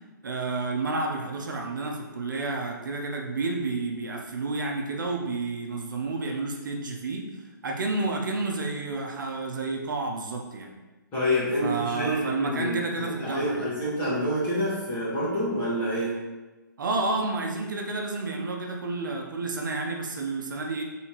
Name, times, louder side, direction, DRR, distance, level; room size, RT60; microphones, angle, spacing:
voice 1, 0.2-7.3 7.6-10.7 11.6-13.7 16.8-20.8, right 3 dB, 70° right, 0 dB, 0.7 m, -30 dB
voice 2, 11.1-16.2, equal, 15° left, -9 dB, 1.3 m, -27 dB
4.2 x 3.6 x 2.9 m, 1.2 s
hypercardioid pair, 170°, 11 cm